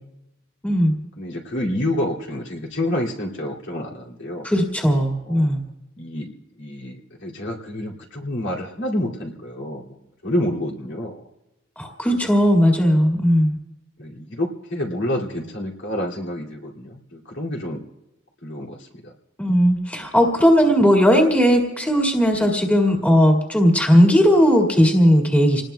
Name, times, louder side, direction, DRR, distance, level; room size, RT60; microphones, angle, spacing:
voice 1, 0.6-1.0 4.4-5.6 11.8-13.6 19.4-25.6, equal, 10° left, 0 dB, 2.0 m, -17 dB
voice 2, 1.2-4.5 5.3-5.5 6.0-6.3 6.6-11.2 14.0-17.8 18.4-19.1, left 1 dB, 65° left, -2 dB, 2.5 m, -28 dB
28.0 x 19.5 x 2.3 m, 0.97 s
head